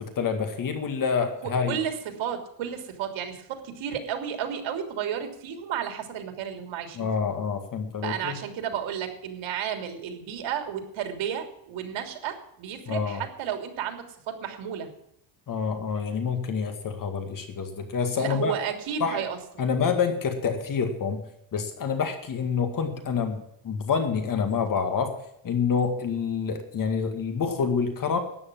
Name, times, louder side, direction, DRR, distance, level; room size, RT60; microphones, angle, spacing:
voice 1, 0.0-1.8 7.0-8.4 12.9-13.2 15.5-18.5 19.0-19.2 19.6-21.2 21.5-25.2 25.4-28.2, left 6 dB, 45° left, 6 dB, 2.1 m, -27 dB
voice 2, 1.4-7.1 8.0-14.9 18.2-19.4, right 8 dB, 90° right, 6 dB, 3.2 m, -32 dB
13.0 x 9.8 x 7.4 m, 0.78 s
cardioid pair, 165°, 46 cm